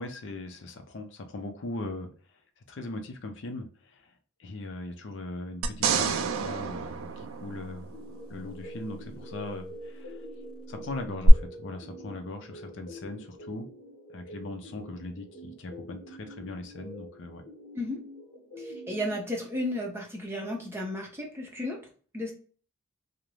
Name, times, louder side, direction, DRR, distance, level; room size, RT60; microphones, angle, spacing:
voice 1, 0.0-2.1 2.6-4.1 4.4-7.9 8.3-10.3 10.7-13.7 14.1-17.4, left 2 dB, 60° left, 6 dB, 0.4 m, -39 dB
sound 1, 5.6-8.1 11.2-11.3, right 6 dB, 80° right, 0.3 m, -29 dB
sound 2, 7.9-19.2, equal, 35° left, 1.1 m, -46 dB
voice 2, 18.6-21.8 22.1-22.3, left 1 dB, 10° right, -1 dB, 0.6 m, -33 dB
2.5 x 2.0 x 2.9 m, 0.40 s
head